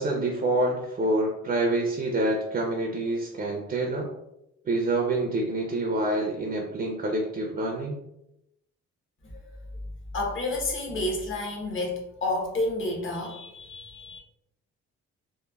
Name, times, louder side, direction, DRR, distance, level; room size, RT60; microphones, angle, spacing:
voice 1, 0.0-4.1 4.7-8.0, right 2 dB, 25° right, 0 dB, 0.4 m, -27 dB
voice 2, 9.3-9.6 10.1-14.2, left 2 dB, 40° left, -1 dB, 0.9 m, -30 dB
3.0 x 2.1 x 2.2 m, 0.84 s
cardioid pair, 90°, 30 cm